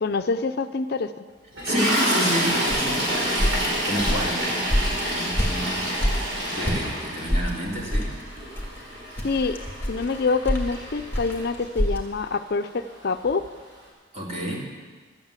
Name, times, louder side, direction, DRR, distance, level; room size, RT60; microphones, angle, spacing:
voice 1, 0.0-1.1 9.2-9.6 9.9-13.4, left 4 dB, 55° left, 9 dB, 0.5 m, -26 dB
Toilet flush, 1.5-11.9 12.8-13.0 13.2-13.4, equal, 80° right, 5.3 m, -28 dB
voice 2, 1.6-3.1 3.8-4.5 5.1-6.0 6.5-8.1 14.1-14.7, equal, 35° right, -3 dB, 2.8 m, -30 dB
sound 1, 2.7-6.9 7.3-12.0, equal, 10° left, 2.1 m, -26 dB
12.5 x 9.0 x 8.2 m, 1.4 s
head